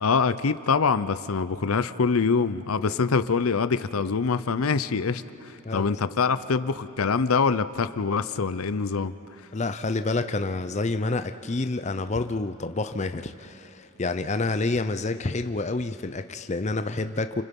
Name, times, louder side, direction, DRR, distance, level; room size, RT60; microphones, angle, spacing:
voice 1, 0.0-9.1, left 5 dB, 85° left, 13 dB, 0.7 m, -24 dB
voice 2, 9.5-17.4, left 3 dB, 35° left, 9 dB, 0.6 m, -28 dB
30.0 x 29.0 x 5.4 m, 2.9 s
head